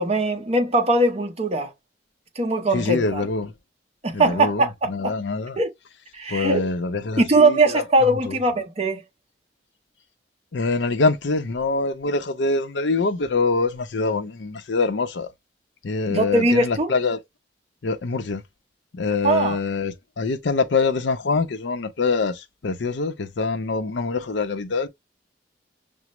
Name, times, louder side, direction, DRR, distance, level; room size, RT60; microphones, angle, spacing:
voice 1, 0.0-1.7 2.4-3.2 4.0-4.7 5.0-5.1 5.6-5.7 6.1-6.6 7.2-9.0 16.1-16.9 19.2-19.6, right 2 dB, 35° right, 0.8 m, -20 dB
voice 2, 2.7-3.5 4.1-5.6 6.3-8.4 10.5-15.3 15.8-17.2 17.8-18.4 18.9-24.9, left 3 dB, 75° left, 0.6 m, -24 dB
6.0 x 2.0 x 2.9 m
head